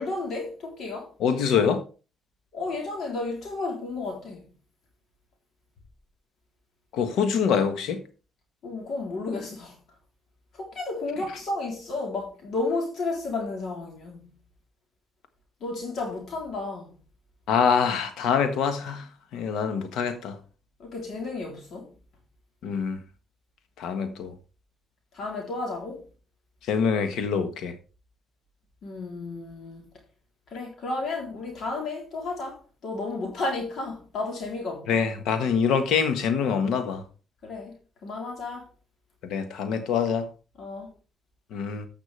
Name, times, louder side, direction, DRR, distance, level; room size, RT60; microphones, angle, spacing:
voice 1, 0.0-1.1 2.5-4.4 8.6-9.8 10.6-14.3 15.6-17.0 20.8-21.9 25.1-26.0 28.8-29.9 30.5-35.0 37.4-38.7 40.6-40.9, left 3 dB, 65° left, 3.6 m, -32 dB
voice 2, 1.2-1.8 6.9-8.0 17.5-19.1 19.3-20.4 22.6-23.0 23.8-24.3 26.7-27.7 34.9-37.0 39.2-40.3 41.5-41.9, left 6 dB, 80° left, 1.4 m, -25 dB
15.5 x 6.0 x 3.4 m
cardioid pair, 90°, 0 cm